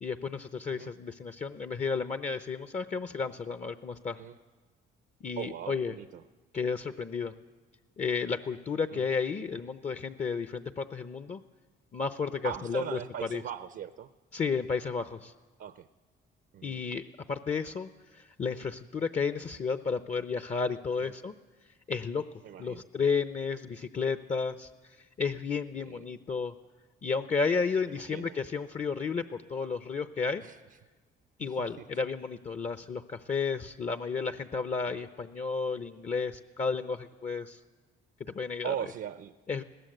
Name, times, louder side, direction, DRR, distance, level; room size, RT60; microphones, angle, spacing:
voice 1, 0.0-4.2 5.2-5.9 6.5-7.3 8.0-11.4 11.9-13.0 13.3-13.4 14.3-15.3 16.6-21.3 21.9-22.2 22.6-24.7 25.2-26.5 27.0-30.4 31.4-37.6 38.3-38.7 39.5-39.6, left 5 dB, 35° left, 10 dB, 0.8 m, -32 dB
voice 2, 5.4-6.2 8.9-9.1 12.4-14.1 15.6-15.9 16.5-16.8 22.4-22.9 25.8-26.0 27.9-28.4 30.4-30.6 31.4-31.9 34.9-35.0 38.6-39.4, right 9 dB, 70° right, 12 dB, 0.7 m, -40 dB
20.5 x 16.5 x 8.0 m, 1.3 s
cardioid pair, 90°, 20 cm